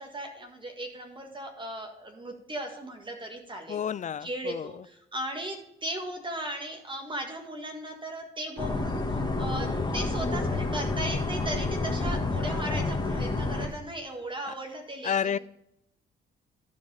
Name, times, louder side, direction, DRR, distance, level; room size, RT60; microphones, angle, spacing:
voice 1, 0.0-3.8 4.2-15.4, right 1 dB, 25° right, 3 dB, 1.7 m, -37 dB
voice 2, 3.7-4.7 14.5-14.6 15.0-15.4, left 8 dB, 40° left, 19 dB, 0.4 m, -30 dB
sound 1, 8.6-13.7, left 3 dB, 20° left, 1.9 m, -29 dB
12.5 x 4.7 x 5.5 m, 0.76 s
cardioid pair, 90°, 20 cm